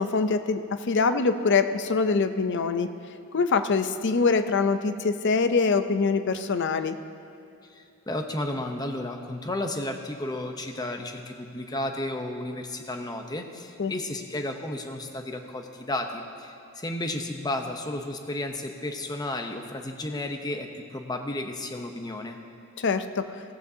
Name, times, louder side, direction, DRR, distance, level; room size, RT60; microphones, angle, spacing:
voice 1, 0.0-2.9 3.3-7.0 13.8-13.9 22.8-23.3, left 4 dB, 50° left, 10 dB, 0.5 m, -24 dB
voice 2, 7.7-22.4, left 1 dB, 20° left, 5 dB, 0.8 m, -33 dB
16.5 x 14.5 x 2.8 m, 2.6 s
head